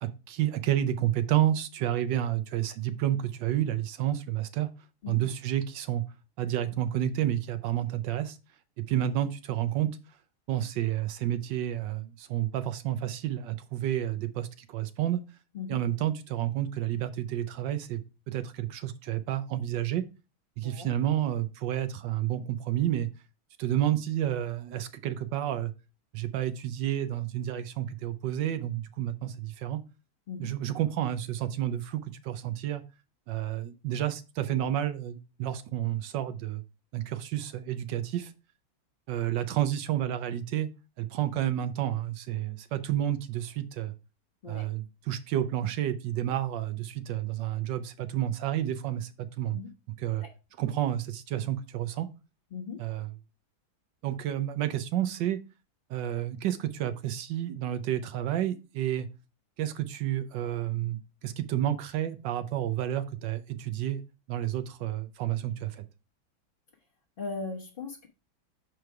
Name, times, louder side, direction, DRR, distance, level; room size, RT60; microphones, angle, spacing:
voice 1, 0.0-4.7 5.1-6.0 6.4-8.4 8.8-9.9 10.5-15.2 15.7-18.0 18.3-20.0 20.6-23.1 23.6-25.7 26.1-29.8 30.4-32.8 33.3-36.6 36.9-38.3 39.1-40.7 41.0-43.9 44.5-49.6 50.0-50.2 50.6-52.1 52.8-53.1 54.0-55.4 55.9-59.1 59.6-64.0 64.3-65.8, right 12 dB, 70° right, 11 dB, 1.3 m, -30 dB
voice 2, 67.2-68.1, left 4 dB, 40° left, -2 dB, 1.0 m, -38 dB
6.4 x 4.7 x 4.7 m, 0.30 s
omnidirectional pair, 2.2 m